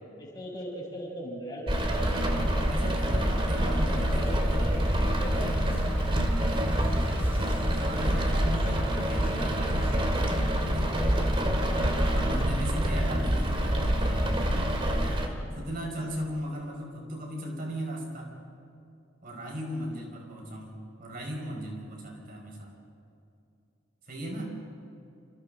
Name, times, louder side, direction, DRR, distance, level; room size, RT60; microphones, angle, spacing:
voice 1, 0.2-3.1 3.5-5.6 6.0-6.3 9.1-9.6 10.8-11.1 15.8-16.1 19.7-20.0, equal, 20° left, -4 dB, 6.9 m, -41 dB
Rain, 1.7-15.3, equal, 30° right, 2.2 m, -26 dB
voice 2, 2.7-4.8 5.3-5.7 7.7-10.3 10.6-11.0 11.9-14.4 14.9-18.3 19.2-22.7 24.1-24.5, equal, 50° right, 0 dB, 5.4 m, -37 dB
sound 1, 3.5-10.7, equal, 10° right, 2.9 m, -43 dB
29.0 x 28.0 x 3.9 m, 2.5 s
head